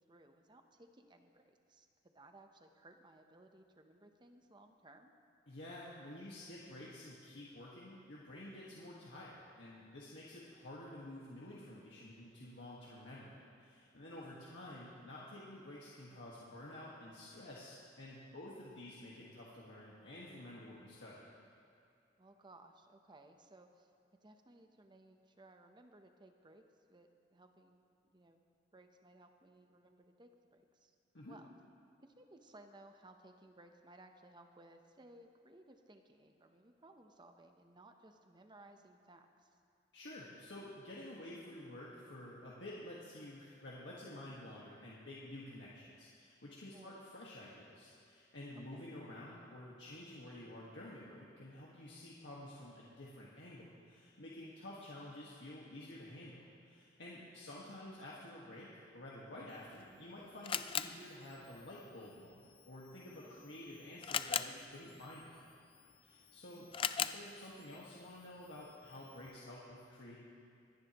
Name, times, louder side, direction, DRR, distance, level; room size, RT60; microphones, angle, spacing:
voice 1, 0.0-5.1 18.6-18.7 22.2-23.9 24.2-28.4 28.7-30.9 31.3-31.5 32.0-39.6 46.7-47.0 48.5-48.9 57.2-57.5 63.1-63.5 66.5-66.9, right 2 dB, 25° right, 5 dB, 0.8 m, -61 dB
voice 2, 5.5-21.2 31.1-31.4 39.9-65.6 66.0-66.7 67.0-70.2, left 1 dB, 75° left, -6 dB, 1.7 m, -51 dB
Camera, 59.5-69.4, left 8 dB, 30° left, 0.3 m, -43 dB
25.0 x 11.0 x 3.0 m, 2.4 s
head